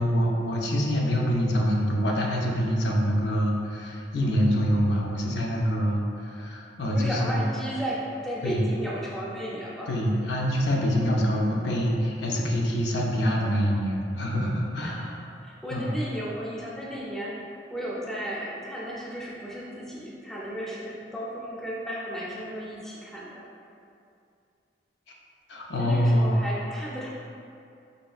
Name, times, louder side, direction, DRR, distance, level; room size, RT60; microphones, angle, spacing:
voice 1, 0.0-7.4 8.4-8.6 9.9-15.1 15.7-15.9 25.5-26.4, equal, 80° left, -1 dB, 0.5 m, -25 dB
voice 2, 6.9-10.0 14.8-15.2 15.4-23.4 25.8-27.1, equal, ahead, -6 dB, 0.4 m, -34 dB
4.2 x 3.1 x 2.3 m, 2.5 s
head